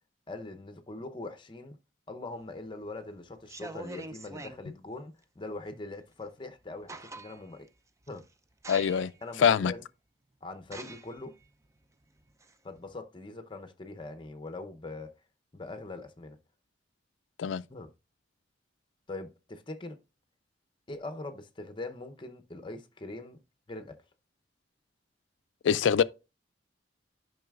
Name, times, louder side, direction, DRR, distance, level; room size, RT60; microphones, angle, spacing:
voice 1, 0.3-1.8 2.1-7.7 8.1-8.2 9.2-9.8 10.4-11.4 12.6-15.1 15.5-16.4 17.7-17.9 19.1-20.0 20.9-23.4 23.7-24.0, left 2 dB, 25° left, 0.7 m, -42 dB
sound 1, 2.4-2.9 3.4-4.6 6.2-6.3 6.6-7.6 8.0-8.3 8.6-9.2 9.7-9.8 10.6-13.0, right 2 dB, 15° right, 0.4 m, -45 dB
voice 2, 8.7-9.1 9.4-9.7 17.4-17.6 25.6-26.0, left 7 dB, 75° left, 0.3 m, -24 dB
10.5 x 5.5 x 2.4 m
head